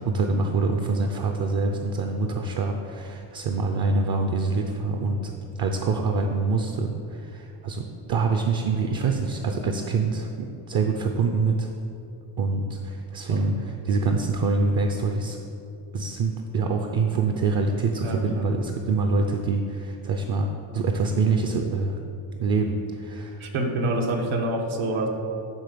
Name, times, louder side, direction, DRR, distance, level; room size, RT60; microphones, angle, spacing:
voice 1, 0.0-5.3 5.6-11.7 12.4-15.4 15.9-21.9 22.4-23.4, right 4 dB, 50° right, 4 dB, 0.7 m, -25 dB
voice 2, 18.0-18.5 23.4-25.1, right 2 dB, 75° right, 2 dB, 1.4 m, -27 dB
10.0 x 3.8 x 6.8 m, 2.7 s
cardioid pair, 135°, 49 cm